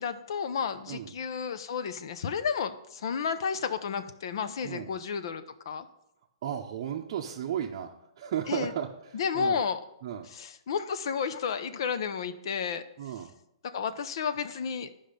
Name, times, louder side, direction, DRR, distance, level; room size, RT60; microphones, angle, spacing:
voice 1, 0.0-5.9 8.5-8.7 9.1-9.8 10.3-12.8 13.7-14.9, left 6 dB, 55° left, 11 dB, 0.7 m, -32 dB
voice 2, 6.4-7.9 8.2-9.6 10.0-10.3 13.0-13.3, right 9 dB, 45° right, -1 dB, 0.7 m, -34 dB
10.0 x 5.4 x 5.2 m, 0.81 s
hypercardioid pair, 160°, 3 cm